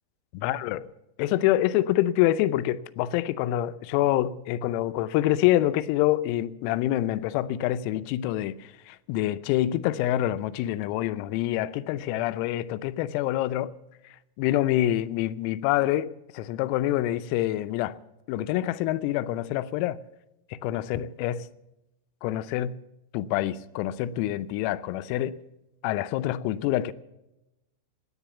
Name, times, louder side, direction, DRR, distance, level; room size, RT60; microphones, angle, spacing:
voice 1, 0.3-0.8 1.2-13.7 14.4-18.0 18.3-20.0 20.5-21.5 22.2-22.8 23.1-25.4 25.8-26.9, left 14 dB, 85° left, 3.4 m, -26 dB
17.5 x 10.0 x 7.0 m
omnidirectional pair, 6.0 m